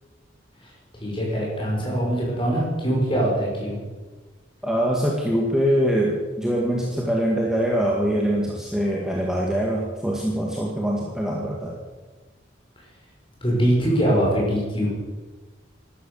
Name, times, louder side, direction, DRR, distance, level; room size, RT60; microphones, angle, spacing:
voice 1, 1.0-3.8 13.4-14.9, equal, 25° left, -3 dB, 6.1 m, -23 dB
voice 2, 4.6-11.7, equal, 5° right, -3 dB, 1.9 m, -23 dB
15.0 x 12.0 x 7.1 m, 1.3 s
head